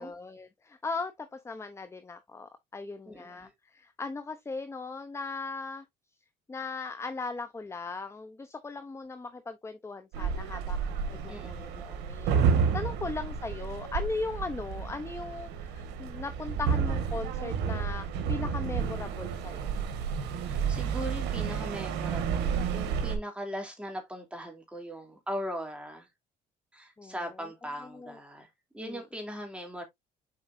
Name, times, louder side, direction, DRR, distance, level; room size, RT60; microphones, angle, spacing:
voice 1, 0.0-5.8 6.5-19.7 27.0-27.1 27.9-28.2 28.8-29.0, left 3 dB, 15° left, 0.7 m, -38 dB
voice 2, 3.1-3.5 11.3-12.0 20.4-26.1 26.7-28.5 28.7-29.8, equal, 5° right, 2.9 m, -39 dB
sound 1, 10.1-23.2, right 6 dB, 85° right, 1.5 m, -31 dB
7.3 x 4.9 x 2.6 m
cardioid pair, 110°, 17 cm